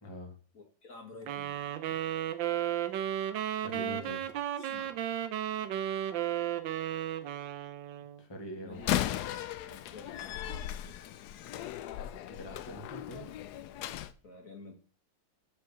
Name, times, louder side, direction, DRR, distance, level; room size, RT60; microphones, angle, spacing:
voice 1, 0.0-0.3 3.6-4.2 8.2-8.8 12.3-13.3, equal, 15° left, 2 dB, 1.4 m, -43 dB
voice 2, 0.5-1.7 4.1-5.0 8.6-9.1 9.6-10.9 14.2-14.7, left 3 dB, 40° left, 1 dB, 1.8 m, -51 dB
sound 1, 1.3-8.2, right 11 dB, 70° right, 1.3 m, -34 dB
Slam, 8.7-14.1, left 12 dB, 80° left, 0.9 m, -36 dB
7.9 x 4.9 x 6.9 m, 0.40 s
omnidirectional pair, 2.3 m